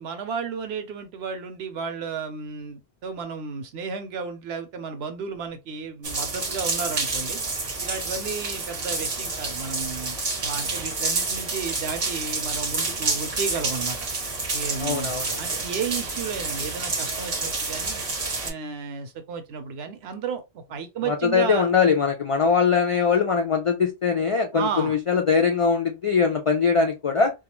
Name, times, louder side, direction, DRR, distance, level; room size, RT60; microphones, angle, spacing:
voice 1, 0.0-7.4 7.8-14.0 14.5-15.1 15.4-18.0 18.4-21.7 24.5-24.9, right 6 dB, 75° right, 0.9 m, -33 dB
sound 1, 6.0-18.5, right 3 dB, 40° right, 0.6 m, -29 dB
voice 2, 14.8-15.4 21.1-27.3, left 5 dB, 60° left, 0.3 m, -22 dB
2.3 x 2.3 x 2.9 m
omnidirectional pair, 1.1 m